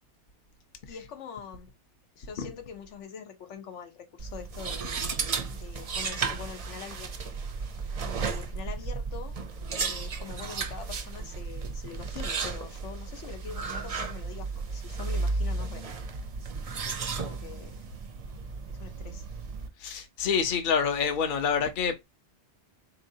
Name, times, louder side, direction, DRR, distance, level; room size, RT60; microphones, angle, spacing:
voice 1, 0.9-1.7 2.2-5.2 5.5-7.3 8.0-9.4 9.7-15.9 16.8-17.8 18.7-19.3, left 7 dB, 80° left, 1.1 m, -44 dB
sound 1, 4.2-19.7, right 4 dB, 45° right, 0.5 m, -34 dB
voice 2, 19.8-22.0, left 6 dB, 50° left, 0.8 m, -27 dB
4.0 x 3.0 x 2.7 m
omnidirectional pair, 1.2 m